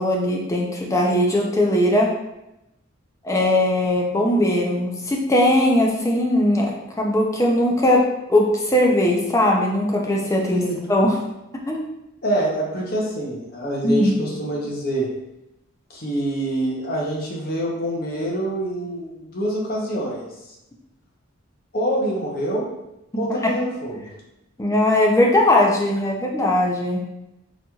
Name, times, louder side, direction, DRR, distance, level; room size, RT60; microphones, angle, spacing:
voice 1, 0.0-2.1 3.2-8.0 8.3-10.6 10.9-11.2 11.7-11.9 13.8-14.1 23.4-23.5 24.6-27.0, left 1 dB, 15° left, -1 dB, 0.4 m, -19 dB
voice 2, 10.5-10.8 12.2-15.1 15.9-20.5 21.7-22.6 23.2-24.1, right 1 dB, 45° left, -3 dB, 0.7 m, -26 dB
4.0 x 3.0 x 2.3 m, 0.89 s
head